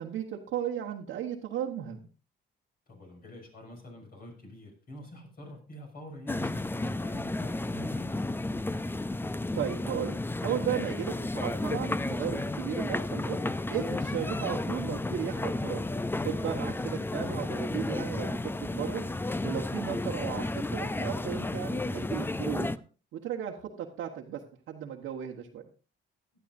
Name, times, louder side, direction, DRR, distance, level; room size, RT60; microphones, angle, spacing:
voice 1, 0.0-2.0 9.5-13.4 13.7-15.8 16.2-19.0 19.4-22.7 23.1-24.4 24.7-25.6, right 9 dB, 85° right, -1 dB, 1.3 m, -35 dB
voice 2, 2.9-8.2 14.1-14.3 16.8-17.1, equal, 50° left, 1 dB, 6.9 m, -46 dB
sound 1, 6.3-22.8, left 2 dB, 10° left, 0.5 m, -32 dB
17.0 x 11.5 x 2.6 m, 0.36 s
cardioid pair, 90°, 20 cm